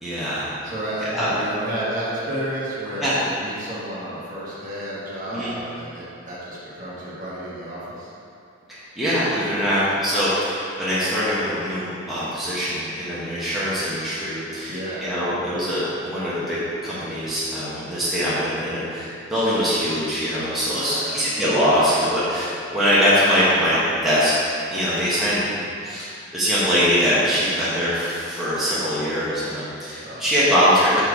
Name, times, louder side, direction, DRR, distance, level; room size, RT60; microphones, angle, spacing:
voice 1, 0.0-0.5 1.1-1.3 3.0-3.1 5.3-5.5 8.7-24.3 24.7-25.5 25.8-31.0, equal, ahead, -12 dB, 1.0 m, -22 dB
voice 2, 0.6-8.1 14.7-15.0 20.8-21.2 30.0-30.6, right 1 dB, 40° right, -8 dB, 1.4 m, -31 dB
5.2 x 4.4 x 4.7 m, 2.5 s
head